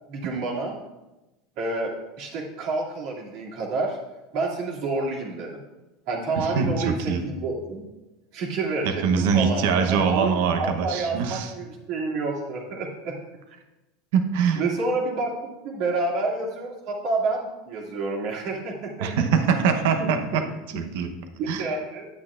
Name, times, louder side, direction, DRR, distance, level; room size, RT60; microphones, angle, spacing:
voice 1, 0.1-0.8 1.6-4.0 4.3-5.6 6.1-7.8 8.3-13.2 14.6-15.3 15.6-19.1 20.0-20.1 21.4-22.1, right 3 dB, 60° right, -3 dB, 2.2 m, -29 dB
voice 2, 6.4-7.2 8.8-11.5 14.1-14.6 19.0-20.4 20.7-21.1 21.5-21.7, right 6 dB, 75° right, 6 dB, 0.8 m, -23 dB
10.0 x 8.3 x 2.5 m, 1.0 s
supercardioid pair, 130°, 0 cm